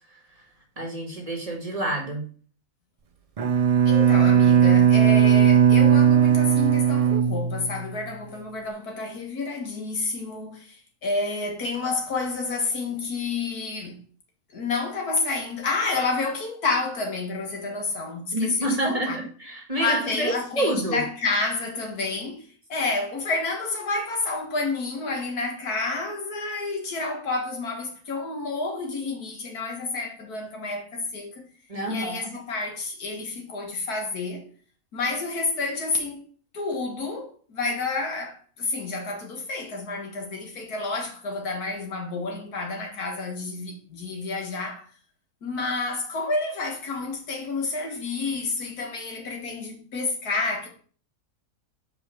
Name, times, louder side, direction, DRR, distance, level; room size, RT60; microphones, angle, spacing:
voice 1, 0.8-2.2 18.3-21.0 31.7-32.3, right 1 dB, 25° right, 1.5 m, -28 dB
Bowed string instrument, 3.4-8.1, right 8 dB, 70° right, 0.3 m, -18 dB
voice 2, 3.8-14.0 14.5-19.2 19.8-22.4 22.7-31.5 31.9-34.5 34.9-36.2 36.5-44.8 45.4-50.7, left 3 dB, 85° left, 2.1 m, -29 dB
5.1 x 4.9 x 6.3 m
omnidirectional pair, 1.6 m